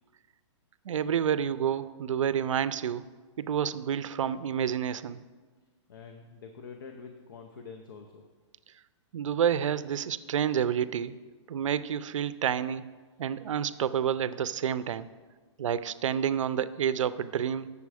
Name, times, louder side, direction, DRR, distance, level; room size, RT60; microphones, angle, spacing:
voice 1, 0.9-3.1 3.4-5.2 9.1-11.1 11.5-12.8 13.2-15.1 15.6-17.7, right 8 dB, 80° right, 15 dB, 0.5 m, -29 dB
voice 2, 5.9-8.2, left 5 dB, 45° left, 5 dB, 0.6 m, -46 dB
8.3 x 6.9 x 4.8 m, 1.4 s
hypercardioid pair, 180°, 16 cm